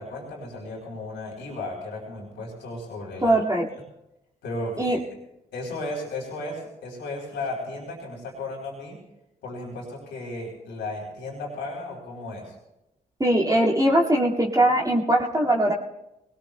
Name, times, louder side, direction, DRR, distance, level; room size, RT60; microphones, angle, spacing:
voice 1, 0.0-3.4 4.4-5.0 5.5-9.0 9.4-12.6, left 2 dB, 75° left, -2 dB, 3.4 m, -35 dB
voice 2, 3.2-3.6 4.8-5.0 13.2-15.7, right 1 dB, 20° right, -2 dB, 2.0 m, -21 dB
21.5 x 19.0 x 2.2 m, 0.90 s
hypercardioid pair, 40°, 19 cm